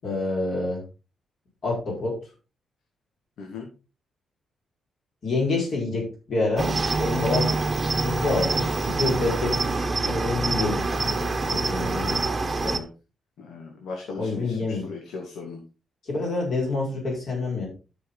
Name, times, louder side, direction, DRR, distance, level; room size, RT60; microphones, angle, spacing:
voice 1, 0.0-0.8 1.6-2.2 5.2-7.5 7.9-12.2 14.2-14.9 16.0-17.7, left 3 dB, 50° left, -1 dB, 5.0 m, -27 dB
Cricket, 6.6-12.8, right 3 dB, 20° right, 1.2 m, -25 dB
voice 2, 13.4-15.6, left 4 dB, 75° left, 1 dB, 2.2 m, -37 dB
12.5 x 6.3 x 3.9 m, 0.32 s
wide cardioid pair, 175°, 0 cm